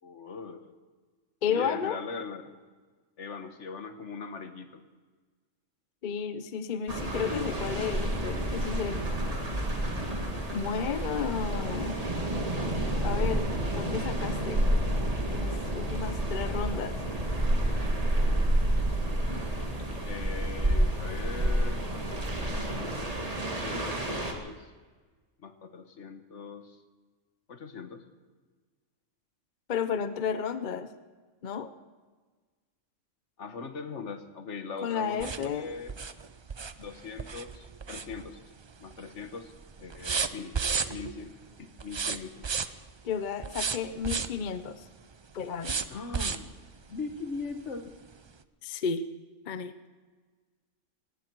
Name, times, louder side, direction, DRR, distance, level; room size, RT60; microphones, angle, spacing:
voice 1, 0.0-0.8 1.5-2.6 3.2-4.8 20.0-21.9 22.1-24.7 25.4-26.8 27.5-28.0 33.4-35.9 36.8-38.4 38.8-39.5 39.8-40.6 40.9-41.3 41.6-42.4 45.9-46.5 46.9-47.9, left 5 dB, 65° left, 8 dB, 1.5 m, -40 dB
voice 2, 1.4-2.0 6.0-9.0 10.5-12.0 13.0-14.6 15.3-17.0 29.7-30.9 31.4-31.7 34.8-35.7 43.0-44.8 45.3-45.8 48.6-49.1 49.5-49.7, left 7 dB, 45° left, 12 dB, 0.7 m, -32 dB
sound 1, 6.9-24.3, right 1 dB, 30° right, 1.9 m, -29 dB
sound 2, 35.2-38.6 38.9-39.3 39.5-41.2 41.8-42.9 43.4-44.4 45.6-46.6 47.1-47.2 47.6-47.7, right 5 dB, 45° right, 0.3 m, -33 dB
19.0 x 16.5 x 4.6 m, 1.4 s
omnidirectional pair, 1.3 m